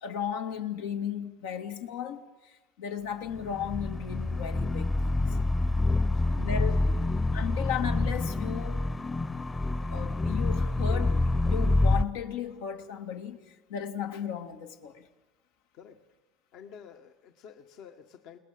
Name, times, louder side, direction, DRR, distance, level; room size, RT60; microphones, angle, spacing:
voice 1, 0.0-5.4 6.3-6.9 7.3-8.9 9.9-11.2 11.4-15.1, left 8 dB, 85° left, 2.5 m, -35 dB
sound 1, 3.3-12.0, left 2 dB, 20° left, 1.0 m, -27 dB
voice 2, 5.9-6.4 6.9-7.0 15.7-16.0 16.5-18.4, left 8 dB, 65° left, 1.7 m, -50 dB
29.0 x 19.5 x 7.8 m
supercardioid pair, 90°, 0 cm